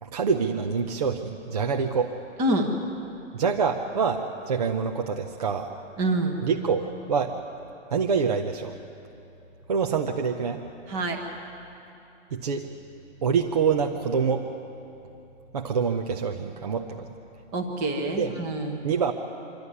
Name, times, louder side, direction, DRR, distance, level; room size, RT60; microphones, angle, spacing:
voice 1, 0.0-2.1 3.3-5.7 6.4-7.4 7.9-8.8 9.7-10.6 12.3-12.7 13.2-14.5 15.5-17.1 18.2-18.3 18.8-19.1, right 6 dB, 30° right, 3 dB, 0.7 m, -26 dB
voice 2, 6.0-6.4 10.9-11.2 17.5-18.8, right 1 dB, 10° right, 3 dB, 1.0 m, -26 dB
26.5 x 12.0 x 9.6 m, 2.8 s
hypercardioid pair, 170°, 38 cm